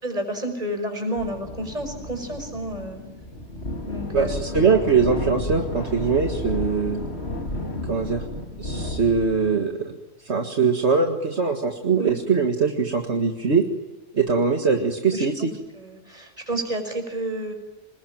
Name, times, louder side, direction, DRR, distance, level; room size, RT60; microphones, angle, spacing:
voice 1, 0.0-3.0 3.9-4.6 12.0-12.1 15.1-15.5 15.7-17.5, right 1 dB, 30° right, 5 dB, 5.6 m, -30 dB
sound 1, 1.2-9.5, left 1 dB, 60° left, 3.3 m, -32 dB
voice 2, 4.1-7.0 7.8-8.2 8.6-9.9 10.2-13.7 14.1-15.5, right 5 dB, 65° right, 3 dB, 2.1 m, -22 dB
27.0 x 21.0 x 9.1 m, 1.1 s
omnidirectional pair, 1.3 m